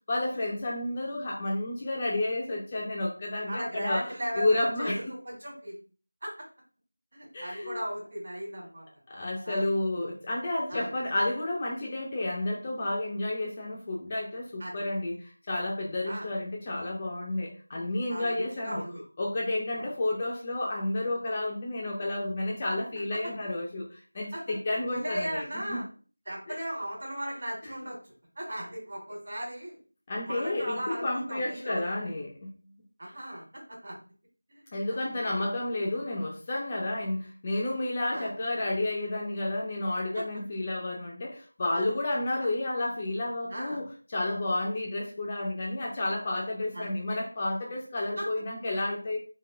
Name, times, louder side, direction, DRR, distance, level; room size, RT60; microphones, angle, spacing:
voice 1, 0.1-4.1 4.4-5.1 7.3-7.8 9.1-18.8 19.2-25.8 26.5-26.6 30.1-32.5 34.7-49.2, left 2 dB, 20° left, 0.3 m, -31 dB
voice 2, 3.5-5.8 6.2-6.3 7.1-8.8 9.4-9.7 10.7-10.9 14.6-14.8 16.0-16.3 18.1-19.0 19.7-19.9 23.1-23.2 24.3-24.4 24.9-25.9 26.2-29.8 30.2-31.8 33.0-33.4 33.8-34.0 34.5-35.0 35.4-35.5 38.1-38.3 40.1-40.2 41.7-41.9 42.4-42.5 43.5-43.8 46.7-46.9 48.2-48.3, equal, 45° right, 1.3 m, -37 dB
2.9 x 2.4 x 2.4 m
figure-of-eight pair, 175°, 0 cm